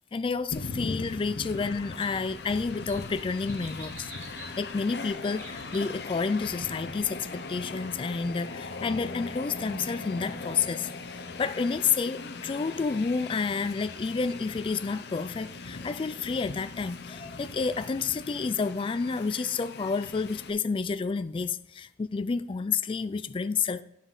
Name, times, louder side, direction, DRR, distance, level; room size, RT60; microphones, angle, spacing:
voice 1, 0.1-4.1 4.6-23.8, left 5 dB, 30° left, 0.3 m, -30 dB
Train, 0.5-20.5, left 3 dB, 60° left, 0.7 m, -40 dB
House Finch call, 1.3-7.5, right 1 dB, 40° right, 2.5 m, -49 dB
9.7 x 5.1 x 5.4 m
head